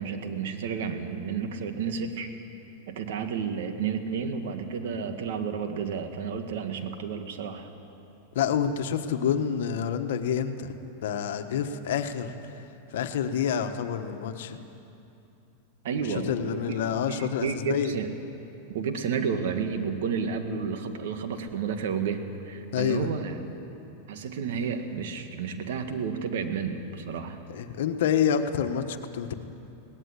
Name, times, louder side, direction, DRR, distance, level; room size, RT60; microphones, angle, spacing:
voice 1, 0.0-2.3 2.9-7.7 15.8-18.1 18.7-23.7 24.1-27.4, right 6 dB, 75° right, 7 dB, 1.9 m, -31 dB
voice 2, 8.3-12.3 12.9-14.6 16.3-17.9 22.7-23.1 27.5-29.3, left 8 dB, 75° left, 8 dB, 1.3 m, -28 dB
18.5 x 15.0 x 9.9 m, 2.8 s
supercardioid pair, 130°, 0 cm